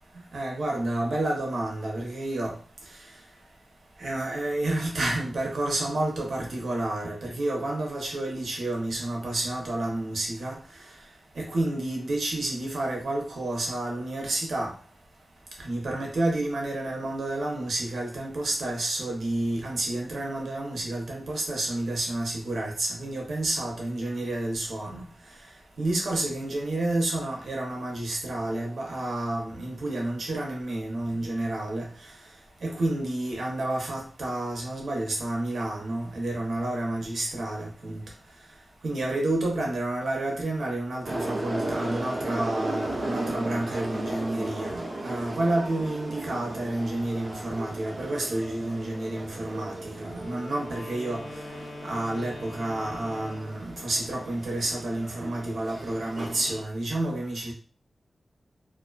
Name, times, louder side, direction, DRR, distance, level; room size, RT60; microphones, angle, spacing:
voice 1, 0.3-2.6 4.0-10.6 11.4-14.7 15.6-25.1 25.8-31.9 32.6-38.0 38.8-51.2 51.8-57.5, right 1 dB, 85° right, 0 dB, 0.7 m, -30 dB
sound 1, 41.0-56.6, right 1 dB, 50° right, 0.8 m, -36 dB
Wind instrument woodwind instrument, 50.1-53.6, left 2 dB, 45° left, 0.9 m, -42 dB
2.4 x 2.1 x 2.3 m, 0.41 s
wide cardioid pair, 85°, 0 cm